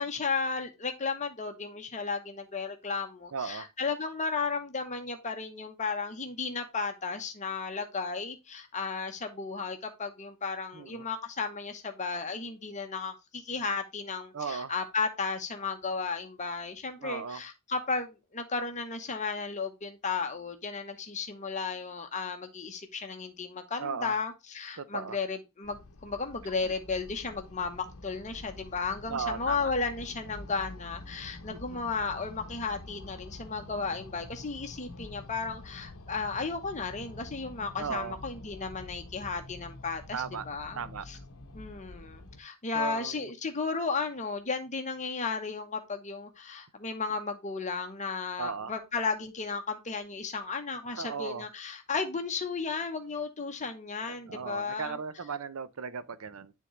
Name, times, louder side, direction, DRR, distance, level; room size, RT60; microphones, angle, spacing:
voice 1, 0.0-41.2 41.5-55.0, left 4 dB, 35° left, 0.9 m, -34 dB
voice 2, 3.3-3.7 10.7-11.1 14.3-14.7 17.0-17.4 23.8-24.1 24.8-25.2 26.6-26.7 29.1-29.7 31.5-31.6 37.8-38.2 40.1-40.4 40.8-41.0 42.7-43.3 48.4-48.7 51.0-51.4 54.3-56.5, right 6 dB, 75° right, 0.6 m, -36 dB
sound 1, 25.6-42.4, left 2 dB, 75° left, 0.8 m, -47 dB
9.8 x 3.7 x 3.1 m
head